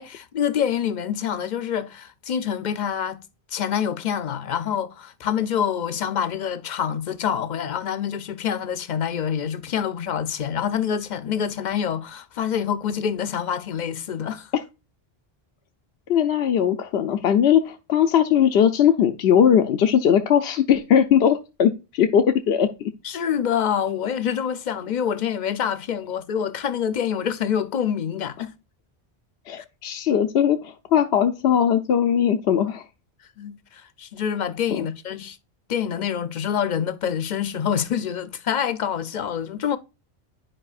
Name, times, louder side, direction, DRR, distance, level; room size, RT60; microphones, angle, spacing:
voice 1, 0.0-3.2 3.5-14.5 23.0-28.5 33.4-35.4 35.7-39.8, left 8 dB, 50° left, 0.7 m, -26 dB
voice 2, 16.1-22.9 29.5-32.8 34.7-34.9, left 9 dB, 85° left, 0.9 m, -19 dB
10.0 x 4.9 x 2.4 m
omnidirectional pair, 1.1 m